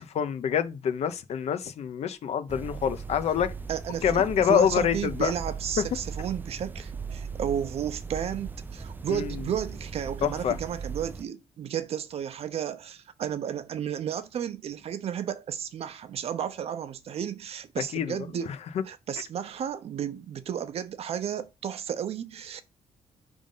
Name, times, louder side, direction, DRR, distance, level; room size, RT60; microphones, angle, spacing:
voice 1, 0.1-3.5 4.0-5.3 9.1-9.4 10.2-10.6 17.9-18.2, left 8 dB, 65° left, 0.8 m, -26 dB
sound 1, 2.5-11.2, right 5 dB, 15° right, 0.4 m, -38 dB
voice 2, 3.7-18.5 18.8-22.6, right 9 dB, 55° right, 0.7 m, -33 dB
5.2 x 3.5 x 5.5 m
cardioid pair, 155°, 12 cm